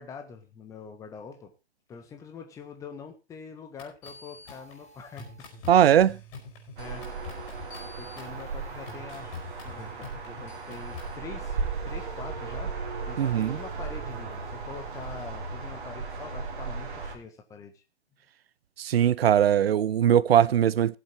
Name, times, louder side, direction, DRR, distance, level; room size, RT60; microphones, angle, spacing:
voice 1, 0.0-1.5 1.9-5.5 6.8-7.1 8.0-11.6 11.8-12.8 13.1-17.8 20.3-20.4, left 5 dB, 10° left, 1.4 m, -44 dB
sound 1, 3.8-11.2, left 4 dB, 30° left, 4.6 m, -45 dB
voice 2, 5.7-6.2 13.2-13.6 18.8-21.0, right 10 dB, 65° right, 0.6 m, -20 dB
sound 2, 6.8-17.2, right 4 dB, 50° right, 3.5 m, -36 dB
17.5 x 7.6 x 4.4 m
hypercardioid pair, 145°, 33 cm